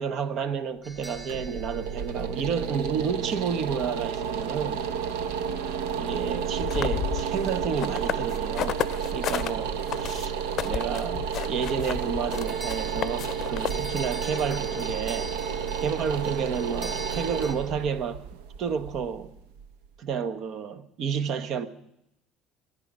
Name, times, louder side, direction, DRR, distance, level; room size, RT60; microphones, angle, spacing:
voice 1, 0.0-4.8 6.0-8.8 9.1-10.3 10.6-15.3 15.8-18.2 18.6-19.3 20.0-21.7, right 6 dB, 55° right, 1.0 m, -31 dB
sound 1, 0.8-3.1 12.3-17.5, right 1 dB, 30° right, 3.0 m, -42 dB
sound 2, 0.9-19.9, right 7 dB, 90° right, 1.0 m, -31 dB
sound 3, 6.6-9.5 9.9-14.1, left 11 dB, 50° left, 0.6 m, -32 dB
22.5 x 10.0 x 5.2 m
supercardioid pair, 95°, 0 cm